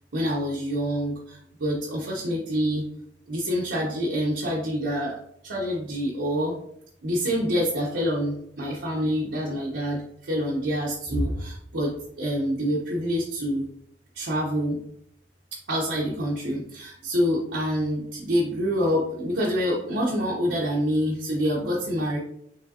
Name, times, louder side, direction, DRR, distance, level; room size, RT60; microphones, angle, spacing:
voice 1, 0.1-3.0 3.3-6.6 7.0-13.7 14.1-14.8 15.7-22.2, equal, 85° right, -5 dB, 0.9 m, -26 dB
5.1 x 3.2 x 2.7 m, 0.70 s
head